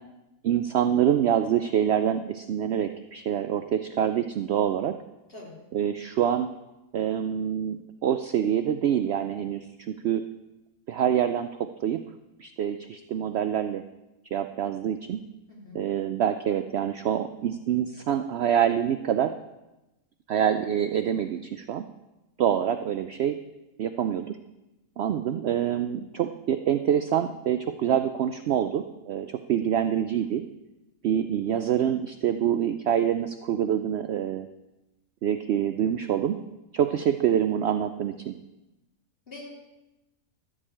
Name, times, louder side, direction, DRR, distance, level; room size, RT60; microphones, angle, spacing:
voice 1, 0.4-4.9 5.7-6.5 6.9-10.2 10.9-12.0 12.4-13.8 14.3-15.2 15.7-19.3 20.3-21.8 22.4-23.4 23.8-24.4 25.0-30.4 31.0-34.5 35.2-36.4 36.7-38.3, right 9 dB, 80° right, 9 dB, 0.5 m, -26 dB
voice 2, 15.5-15.8 39.3-39.5, left 2 dB, 35° left, -3 dB, 3.3 m, -43 dB
13.5 x 4.8 x 8.4 m, 1.0 s
omnidirectional pair, 1.6 m